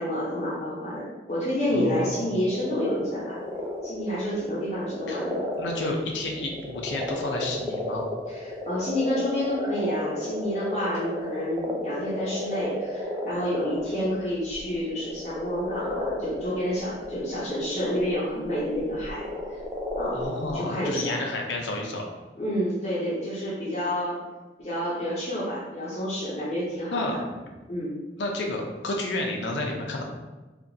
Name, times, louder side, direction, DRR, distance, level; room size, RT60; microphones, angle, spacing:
voice 1, 0.0-3.4 3.8-5.4 8.3-19.2 19.5-19.6 20.0-20.2 20.5-21.2 22.4-24.2 24.6-27.2 27.7-27.9, equal, 35° left, -8 dB, 0.7 m, -29 dB
voice 2, 1.7-2.3 5.1-5.2 5.6-8.1 20.1-22.1 26.9-27.2 28.2-30.0, left 2 dB, 85° left, 1 dB, 0.5 m, -31 dB
sound 1, 1.8-20.5, left 1 dB, 15° right, 0.3 m, -33 dB
2.8 x 2.4 x 2.6 m, 1.2 s
head